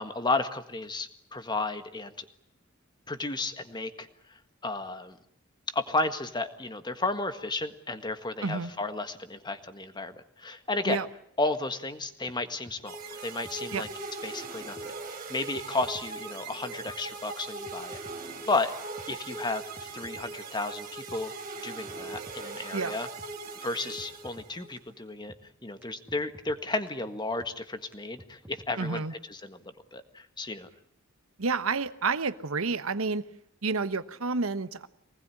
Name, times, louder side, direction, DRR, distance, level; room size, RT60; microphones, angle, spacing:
voice 1, 0.0-2.2 3.1-4.1 4.6-5.2 5.7-11.0 11.4-13.9 14.2-14.8 15.3-18.0 18.5-18.7 19.1-21.3 21.6-23.1 23.6-25.3 25.6-29.0 29.3-29.6 29.9-30.7, left 2 dB, 20° left, 9 dB, 1.7 m, -33 dB
sound 1, 12.7-12.8 13.2-13.3 13.4-14.0 14.2-14.3 14.8-14.9 15.3-15.4 15.5-16.1 16.3-16.4 16.9-17.0 17.4-17.5 17.7-18.2 18.4-18.5 19.0-19.1 19.5-20.3 20.5-20.6 21.1-21.2 21.6-21.7 21.9-22.4 22.7-22.8 23.2-23.3 23.7-23.8 24.0-24.5 24.8-24.9 25.3-25.4 25.8-25.9 26.1-26.6 26.9-27.0 27.4-27.5 27.9-28.0 28.2-28.7 29.0-29.1, right 1 dB, 10° right, 2.5 m, -50 dB
sound 2, 12.9-24.7, right 3 dB, 40° right, 3.8 m, -40 dB
voice 2, 28.8-29.1 31.4-33.2 33.6-34.9, right 4 dB, 85° right, 12 dB, 1.2 m, -29 dB
24.0 x 19.5 x 9.9 m, 0.70 s
head